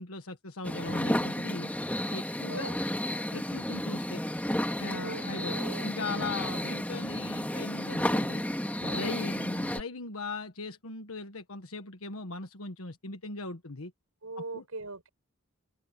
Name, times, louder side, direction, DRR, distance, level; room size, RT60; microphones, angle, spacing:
voice 1, 0.0-1.7 2.1-2.7 3.3-4.2 4.8-8.4 8.8-13.9 14.4-14.6, left 3 dB, 75° left, 1.5 m, -39 dB
sound 1, 0.6-9.8, left 1 dB, 10° left, 2.2 m, -32 dB
voice 2, 2.5-2.8 4.8-5.9 8.8-9.1 14.2-15.1, right 3 dB, 90° right, 5.6 m, -41 dB
open air
head